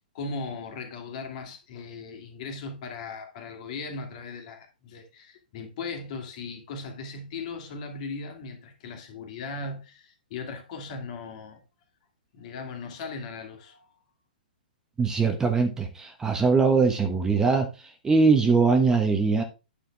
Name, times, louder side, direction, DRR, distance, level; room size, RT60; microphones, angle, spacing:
voice 1, 0.1-11.6 12.3-13.9, left 4 dB, 50° left, 2.5 m, -38 dB
voice 2, 15.0-19.4, right 4 dB, 10° right, 1.1 m, -22 dB
9.2 x 6.5 x 3.4 m
hypercardioid pair, 130°, 5 cm